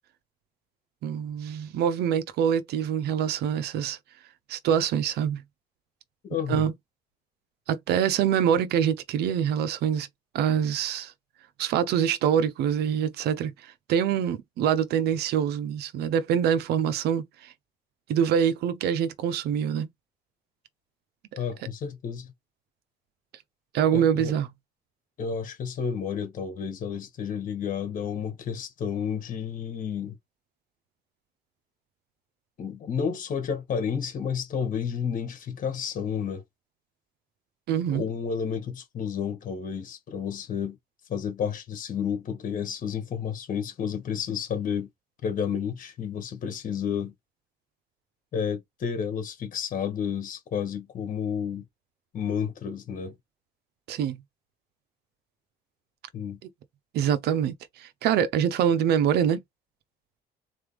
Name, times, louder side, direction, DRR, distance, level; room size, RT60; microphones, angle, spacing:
voice 1, 1.0-4.0 4.5-5.4 6.5-6.7 7.7-10.1 10.3-11.1 11.6-13.5 13.9-17.5 18.1-19.9 23.7-24.5 37.7-38.0 53.9-54.2 56.9-59.4, right 8 dB, 75° right, 0.7 m, -25 dB
voice 2, 6.2-6.7 21.4-22.3 23.9-24.4 25.2-30.2 32.6-36.4 37.9-40.8 41.1-44.9 45.2-47.1 48.3-51.7 52.1-53.2 56.1-56.4, left 7 dB, 50° left, 1.7 m, -31 dB
3.9 x 3.2 x 3.4 m
cardioid pair, 110°, 17 cm